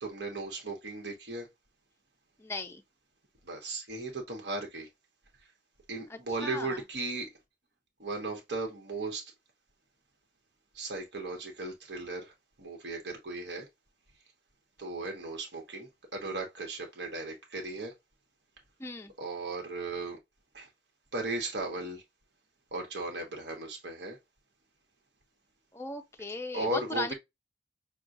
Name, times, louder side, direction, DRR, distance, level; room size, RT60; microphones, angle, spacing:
voice 1, 0.0-1.5 3.5-4.9 5.9-7.3 8.0-9.3 10.7-12.3 12.6-13.7 14.8-17.9 19.2-20.2 20.5-20.7 21.1-22.0 22.7-24.2 26.5-27.1, right 2 dB, 60° right, 1.1 m, -36 dB
voice 2, 2.4-2.8 6.1-6.8 18.8-19.1 25.7-27.1, left 2 dB, 15° left, 0.5 m, -37 dB
6.1 x 2.3 x 2.6 m
head